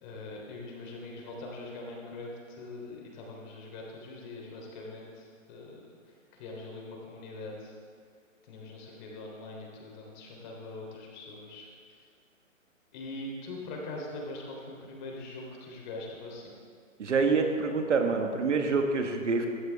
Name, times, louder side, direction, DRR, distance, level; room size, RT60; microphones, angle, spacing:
voice 1, 0.0-5.8 6.1-7.8 8.4-11.7 12.9-16.5, left 2 dB, 35° left, -1 dB, 3.3 m, -42 dB
voice 2, 17.0-19.5, right 4 dB, 60° right, 4 dB, 1.6 m, -26 dB
16.0 x 14.0 x 3.5 m, 2.1 s
figure-of-eight pair, 135°, 40 cm